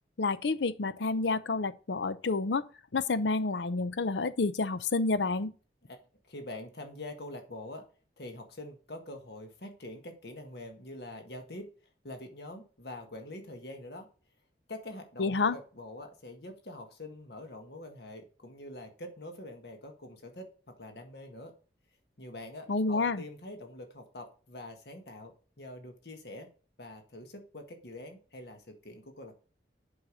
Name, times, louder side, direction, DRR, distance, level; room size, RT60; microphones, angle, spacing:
voice 1, 0.2-2.6 2.9-5.5 15.2-15.6 22.7-23.2, left 3 dB, 80° left, 0.6 m, -29 dB
voice 2, 6.3-7.8 8.2-11.7 12.0-14.1 14.7-21.5 22.2-26.5 26.8-29.4, left 1 dB, 65° left, 1.6 m, -45 dB
7.8 x 5.7 x 4.9 m
head